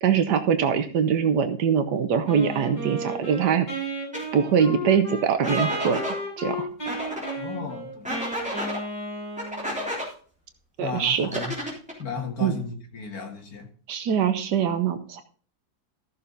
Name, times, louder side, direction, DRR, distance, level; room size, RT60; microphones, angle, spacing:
voice 1, 0.0-3.7 4.3-6.0 6.4-6.7 10.8-11.3 12.4-12.6 13.9-15.2, right 7 dB, 85° right, 9 dB, 1.5 m, -23 dB
Wind instrument woodwind instrument, 2.3-9.9, right 1 dB, 25° left, 5.9 m, -33 dB
sound 1, 4.1-4.2 5.4-6.2 6.9-7.3 8.0-8.8 9.4-10.1 11.2-12.0, left 1 dB, 5° right, 3.5 m, -31 dB
voice 2, 7.3-8.1 10.8-11.5 12.0-13.7, left 5 dB, 65° left, 2 dB, 2.6 m, -34 dB
14.0 x 7.0 x 3.9 m, 0.42 s
omnidirectional pair, 1.8 m